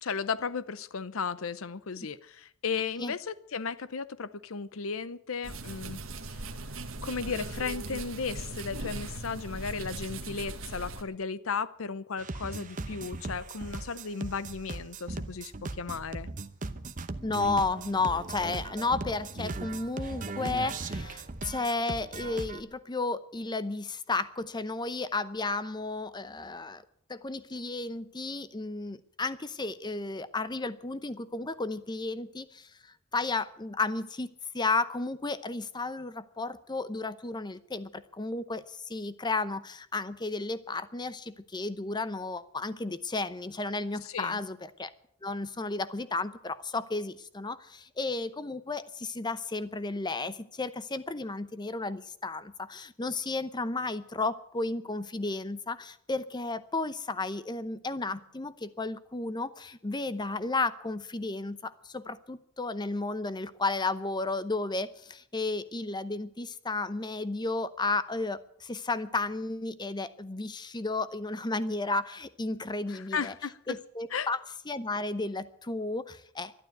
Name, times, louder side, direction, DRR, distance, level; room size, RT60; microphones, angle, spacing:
voice 1, 0.0-6.0 7.0-16.3 44.0-44.4 72.9-73.8 74.1-74.3, left 5 dB, 70° left, 0.7 m, -35 dB
sound 1, 5.4-11.0, right 2 dB, 65° right, 1.4 m, -39 dB
sound 2, 12.2-22.6, right 2 dB, 40° right, 0.8 m, -38 dB
voice 2, 17.2-26.8 27.1-34.3 34.5-44.9 45.2-73.3 73.7-74.4 74.7-76.5, left 3 dB, 20° left, 0.7 m, -33 dB
12.0 x 11.5 x 9.2 m
head